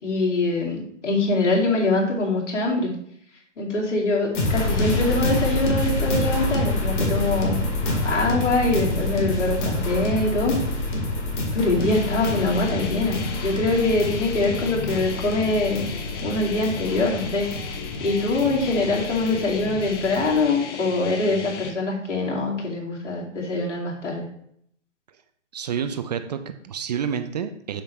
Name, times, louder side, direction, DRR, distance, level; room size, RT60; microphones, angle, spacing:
voice 1, 0.0-2.9 3.6-7.6 8.0-10.6 11.5-15.9 16.2-17.5 18.0-24.3, left 2 dB, 70° left, -2 dB, 2.5 m, -23 dB
sound 1, 4.3-20.4, left 2 dB, 40° left, 2.0 m, -27 dB
sound 2, 11.9-21.7, left 5 dB, 20° left, 0.5 m, -35 dB
voice 2, 25.5-27.8, right 7 dB, 35° right, 8 dB, 0.4 m, -29 dB
7.2 x 5.6 x 3.1 m, 0.68 s
hypercardioid pair, 130°, 37 cm